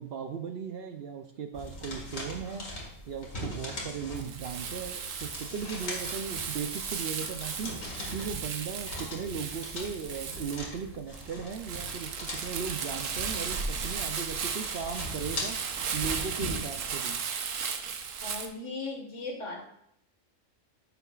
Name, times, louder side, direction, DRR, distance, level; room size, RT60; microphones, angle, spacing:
voice 1, 0.0-2.7 3.1-7.7 8.1-15.6 15.9-17.2, right 6 dB, 60° right, 6 dB, 0.7 m, -37 dB
sound 1, 1.5-16.6, left 1 dB, 85° left, 2.3 m, -41 dB
Crumpling crinkling, 4.1-18.5, right 6 dB, 80° right, 1.1 m, -36 dB
voice 2, 18.2-19.6, left 3 dB, 70° left, 2 dB, 1.9 m, -37 dB
10.0 x 6.9 x 2.4 m, 0.72 s
omnidirectional pair, 1.3 m